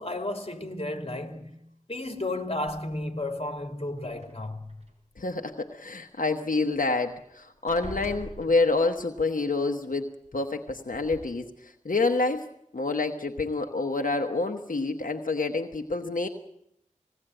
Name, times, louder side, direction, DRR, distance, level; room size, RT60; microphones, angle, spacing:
voice 1, 0.0-1.6 1.9-4.9, left 2 dB, 45° left, 2.7 m, -33 dB
sound 1, 2.7-3.2 4.1-4.9 6.7-6.8 7.1-7.3 7.7-9.1 10.3-10.4 10.9-11.3, right 2 dB, 50° right, 5.5 m, -43 dB
voice 2, 5.2-10.1 10.3-12.5 12.7-16.3, left 3 dB, 90° left, 1.1 m, -27 dB
20.5 x 17.0 x 9.0 m
wide cardioid pair, 50°, 14 cm